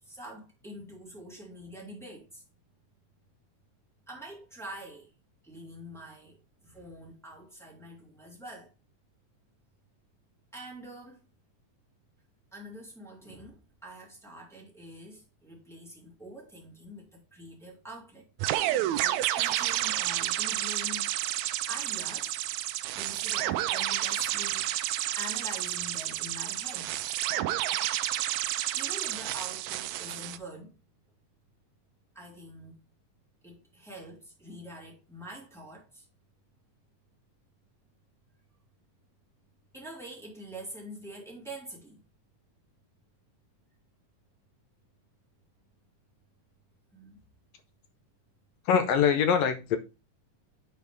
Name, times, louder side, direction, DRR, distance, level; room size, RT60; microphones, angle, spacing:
voice 1, 0.0-2.4 4.1-5.1 5.4-8.7 10.5-11.2 12.5-18.3 18.9-21.1 21.7-22.4 22.9-24.7 25.1-26.9 28.7-30.7 32.1-32.7 33.4-36.0 39.7-42.0 46.9-47.2, right 1 dB, ahead, 1.9 m, -45 dB
sound 1, 18.4-30.4, right 14 dB, 80° right, 1.6 m, -30 dB
voice 2, 48.6-49.8, left 7 dB, 75° left, 1.6 m, -23 dB
9.4 x 4.4 x 3.5 m
omnidirectional pair, 3.6 m